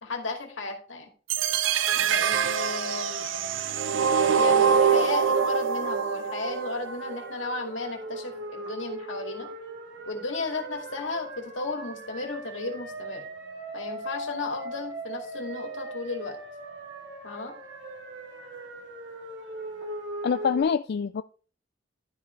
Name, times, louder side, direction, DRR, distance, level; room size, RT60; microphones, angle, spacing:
voice 1, 0.0-1.1 2.0-3.3 4.3-9.5 10.1-13.2 13.7-16.4 17.2-17.5, left 3 dB, 80° left, 3 dB, 2.4 m, -34 dB
sound 1, 1.3-7.3, right 7 dB, 85° right, 0.6 m, -24 dB
sound 2, 1.4-20.6, right 2 dB, 70° right, 2.4 m, -40 dB
voice 2, 20.2-21.2, left 6 dB, 60° left, 11 dB, 0.4 m, -25 dB
12.0 x 5.0 x 4.5 m, 0.39 s
head